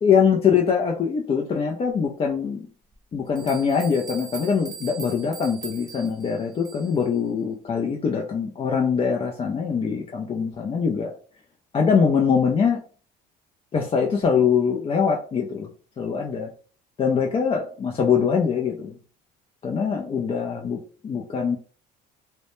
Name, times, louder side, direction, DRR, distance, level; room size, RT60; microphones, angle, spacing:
voice 1, 0.0-2.7 3.1-11.1 11.7-12.8 13.7-15.7 16.0-16.5 17.0-18.9 19.6-20.8 21.0-21.6, left 6 dB, 30° left, 0 dB, 0.4 m, -23 dB
sound 1, 2.9-3.0 3.4-7.1, right 5 dB, 20° right, 0.6 m, -40 dB
2.1 x 2.1 x 2.9 m, 0.41 s
supercardioid pair, 85°, 20 cm